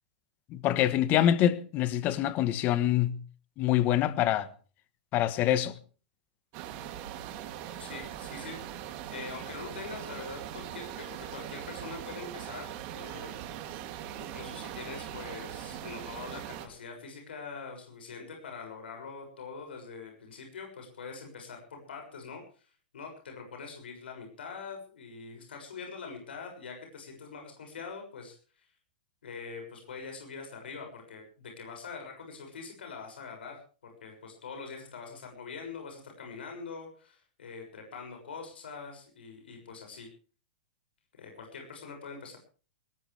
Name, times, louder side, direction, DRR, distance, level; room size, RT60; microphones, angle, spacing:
voice 1, 0.5-3.2 3.6-4.5 5.1-5.7, left 12 dB, 30° left, 1.3 m, -25 dB
sound 1, 6.5-16.7, right 11 dB, 40° right, 2.9 m, -41 dB
voice 2, 7.8-13.4 14.3-22.6 22.9-28.7 29.2-40.1 41.1-42.4, left 5 dB, 90° left, 6.7 m, -44 dB
19.5 x 18.5 x 3.5 m
hypercardioid pair, 145°, 5 cm